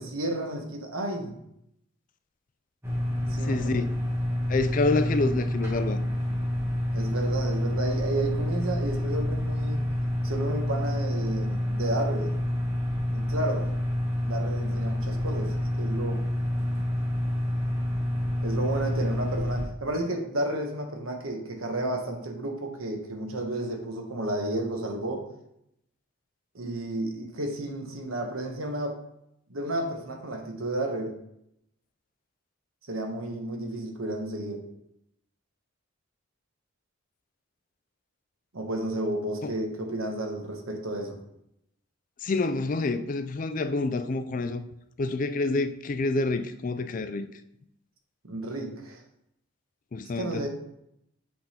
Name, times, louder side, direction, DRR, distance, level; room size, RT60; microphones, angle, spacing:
voice 1, 0.0-1.3 3.2-3.8 6.9-9.8 10.2-12.3 13.1-13.7 14.3-16.2 18.4-25.3 26.5-29.0 29.5-31.1 32.9-34.7 38.5-41.2 48.2-49.0 50.1-50.5, right 1 dB, 85° right, 1.3 m, -32 dB
sound 1, 2.8-19.6, left 1 dB, 15° right, 1.4 m, -28 dB
voice 2, 3.2-3.9 4.5-6.0 39.4-39.5 42.2-44.6 45.0-47.3 49.9-50.5, left 3 dB, 40° left, 0.4 m, -28 dB
7.6 x 3.8 x 4.3 m
head